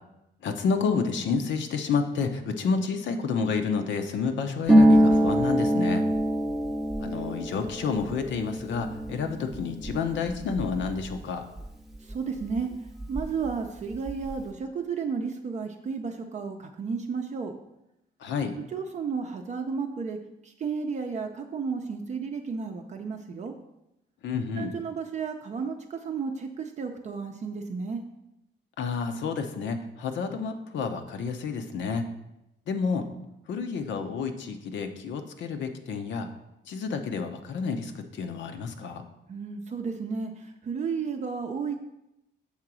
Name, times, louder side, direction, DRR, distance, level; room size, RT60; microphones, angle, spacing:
voice 1, 0.4-6.0 7.0-11.4 18.2-18.5 24.2-24.7 28.8-32.0 32.7-33.1 33.5-36.3 36.7-39.0, left 5 dB, 80° left, 6 dB, 0.8 m, -30 dB
Harp, 4.7-12.1 12.4-13.5 13.8-14.4, equal, ahead, 0.6 m, -25 dB
voice 2, 12.1-12.7 13.1-17.5 18.7-20.2 20.4-23.5 24.5-28.0 39.3-41.8, right 5 dB, 40° right, 3 dB, 0.5 m, -33 dB
7.3 x 3.8 x 6.1 m, 0.88 s
wide cardioid pair, 175°, 19 cm